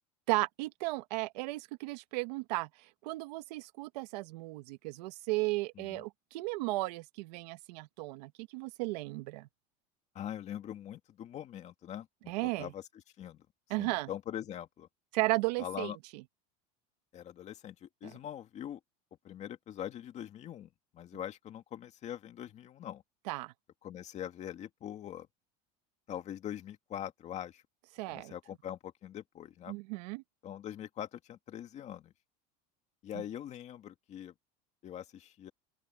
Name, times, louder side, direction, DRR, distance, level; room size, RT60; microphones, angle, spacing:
voice 1, 0.3-9.5 12.3-12.7 13.7-14.1 15.1-15.9 18.0-18.1 23.3-23.5 27.9-28.3 29.7-30.2 33.1-33.2, right 22 dB, 80° right, 1.7 m, -35 dB
voice 2, 10.1-12.8 13.2-13.5 13.8-14.9 15.6-16.0 17.1-18.8 19.2-23.0 23.8-25.3 26.1-27.6 28.1-29.8 30.4-32.1 33.0-34.3 34.8-35.5, left 10 dB, 35° left, 2.2 m, -43 dB
open air
cardioid pair, 155°, 21 cm